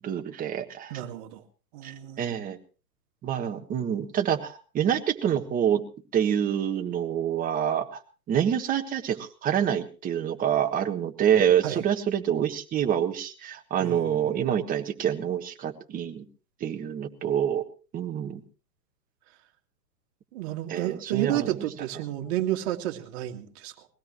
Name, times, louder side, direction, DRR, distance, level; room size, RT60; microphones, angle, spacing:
voice 1, 0.0-0.9 1.8-1.9 2.2-2.6 3.2-5.8 6.1-8.0 8.3-16.2 16.6-17.6 17.9-18.4 20.7-21.5, right 9 dB, 15° right, 5 dB, 1.5 m, -26 dB
voice 2, 0.9-1.4 1.7-2.4 11.6-11.8 13.8-14.6 20.3-23.9, right 13 dB, 40° right, 4 dB, 2.1 m, -31 dB
21.5 x 16.5 x 3.1 m, 0.35 s
hypercardioid pair, 130°, 50 cm